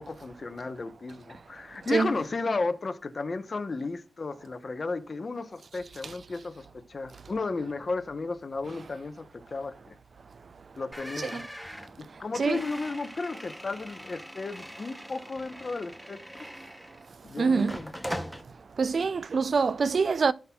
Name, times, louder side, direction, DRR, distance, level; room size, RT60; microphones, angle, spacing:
voice 1, 0.0-10.0 10.7-11.5 12.0-16.5 17.2-17.9, left 3 dB, 40° left, 0.9 m, -34 dB
sound 1, 10.9-17.1 17.6-18.4, equal, 5° right, 0.8 m, -41 dB
voice 2, 17.4-17.8 18.8-20.3, right 4 dB, 55° right, 0.4 m, -25 dB
16.0 x 5.9 x 2.3 m
wide cardioid pair, 125°, 0 cm